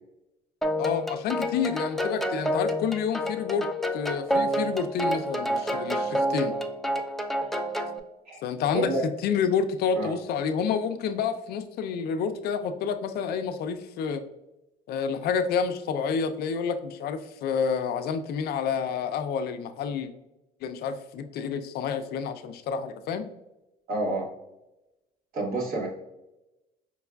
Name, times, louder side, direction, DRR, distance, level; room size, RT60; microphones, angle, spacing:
sound 1, 0.6-8.0, equal, ahead, 0.3 m, -28 dB
voice 1, 0.8-3.7 3.9-6.6 8.4-14.2 14.9-20.1 20.6-23.3, left 6 dB, 70° left, 9 dB, 0.4 m, -29 dB
voice 2, 23.9-24.3 25.3-25.9, right 2 dB, 60° right, -2 dB, 1.2 m, -28 dB
5.2 x 2.3 x 2.2 m, 0.96 s
cardioid pair, 110°, 17 cm